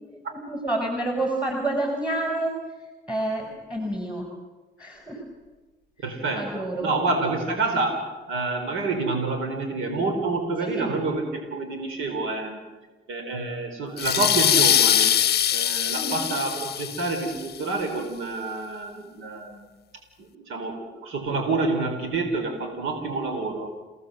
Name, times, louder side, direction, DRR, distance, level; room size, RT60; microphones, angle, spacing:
voice 1, 0.3-2.5 3.1-4.3 4.8-5.2 6.4-6.9 10.6-11.0 15.9-16.3, right 1 dB, 5° right, 2 dB, 5.3 m, -28 dB
voice 2, 6.0-12.6 13.1-15.2 15.5-19.7 20.2-23.8, right 3 dB, 85° right, 5 dB, 4.3 m, -28 dB
sound 1, 14.0-17.4, left 10 dB, 55° left, 0.7 m, -22 dB
29.5 x 17.5 x 7.8 m, 1.2 s
cardioid pair, 90°, 20 cm